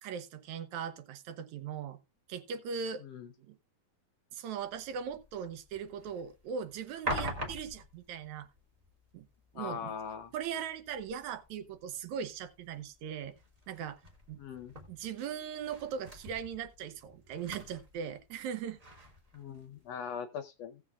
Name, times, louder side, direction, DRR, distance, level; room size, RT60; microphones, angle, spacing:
voice 1, 0.0-2.0 2.3-3.0 3.5-3.6 4.3-8.5 9.1-9.2 9.5-9.9 10.3-13.3 13.7-14.0 14.3-14.4 14.9-18.8, right 7 dB, 75° right, 2.2 m, -39 dB
voice 2, 3.0-3.3 9.5-10.3 14.4-14.7 19.3-20.8, left 7 dB, 75° left, 1.6 m, -41 dB
sound 1, 4.6-19.9, equal, 25° right, 0.9 m, -46 dB
17.0 x 7.3 x 2.3 m
omnidirectional pair, 3.5 m